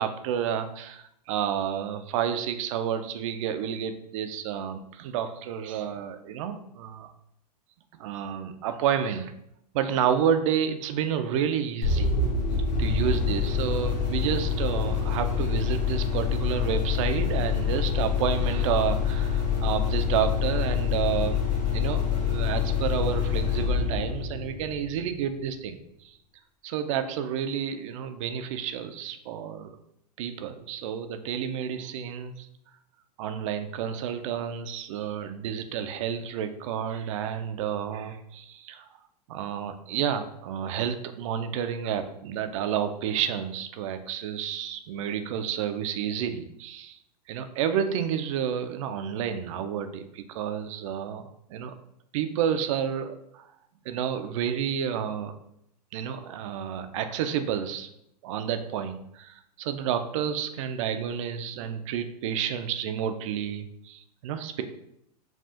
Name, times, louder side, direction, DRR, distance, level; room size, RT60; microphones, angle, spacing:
voice 1, 0.0-7.1 8.0-9.3 9.7-12.1 12.8-21.4 21.7-26.2 26.6-29.7 30.2-32.5 33.2-38.9 39.3-47.0 47.3-51.7 52.1-53.5 53.9-55.4 55.9-57.9 58.2-64.6, right 8 dB, 50° right, 8 dB, 0.4 m, -30 dB
sound 1, 11.8-25.3, left 6 dB, 85° left, 0.9 m, -26 dB
5.4 x 2.4 x 2.7 m, 0.77 s
hypercardioid pair, 100°, 21 cm